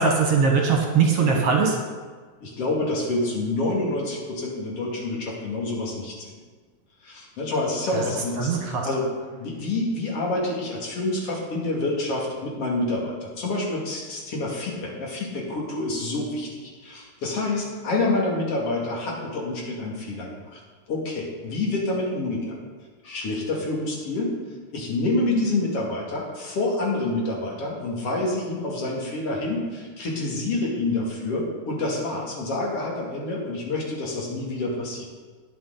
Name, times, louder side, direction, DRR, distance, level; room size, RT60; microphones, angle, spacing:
voice 1, 0.0-1.8 7.9-8.0 8.4-8.9, right 5 dB, 60° right, 1 dB, 2.1 m, -21 dB
voice 2, 2.4-6.3 7.0-9.1 9.4-20.6 20.9-22.6 23.0-24.3 24.7-35.1, left 2 dB, 55° left, -3 dB, 3.1 m, -27 dB
19.5 x 6.5 x 3.9 m, 1.5 s
omnidirectional pair, 3.3 m